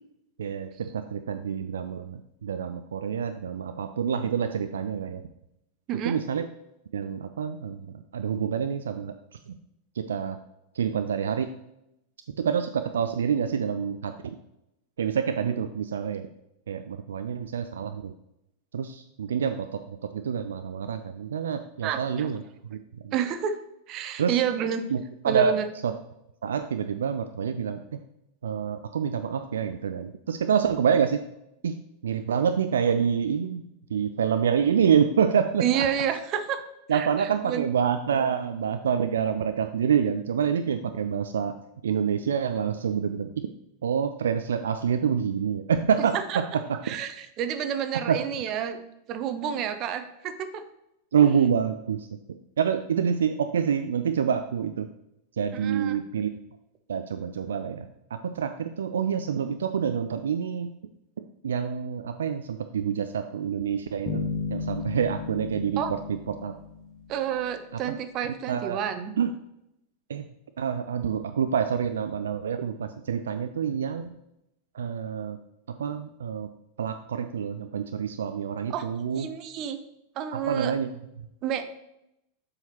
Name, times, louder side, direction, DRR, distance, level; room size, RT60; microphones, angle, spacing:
voice 1, 0.4-5.2 6.0-6.4 6.9-7.9 8.1-9.1 9.5-9.6 10.0-10.4 10.8-11.5 12.4-14.3 15.0-16.3 16.7-18.1 18.7-22.4 22.7-22.8 23.0-23.1 24.2-24.4 24.9-25.6 25.8-25.9 26.4-28.0 28.4-31.2 31.6-31.7 32.0-33.6 33.9-35.9 36.9-41.6 41.8-43.5 43.8-46.4 48.1-48.2 51.1-52.1 52.6-54.9 55.4-56.3 56.9-60.7 61.4-64.2 64.5-66.5 68.5-68.8 69.2-69.3 70.1-70.3 70.6-74.1 74.7-75.4 75.7-76.5 76.8-79.3 80.3-80.9, right 7 dB, 65° right, 8 dB, 0.3 m, -27 dB
voice 2, 21.8-22.3 23.1-23.6 23.9-24.8 25.2-25.6 35.6-36.6 36.9-37.6 46.0-46.4 46.8-48.8 49.1-50.6 55.5-56.0 65.8-65.9 67.1-69.1 78.7-78.9 79.1-79.8 80.2-80.7 81.4-81.6, right 9 dB, 35° right, 9 dB, 0.7 m, -29 dB
sound 1, 64.1-67.5, left 4 dB, 30° left, 1.1 m, -34 dB
7.2 x 6.4 x 2.9 m, 0.84 s
figure-of-eight pair, 90°, 0 cm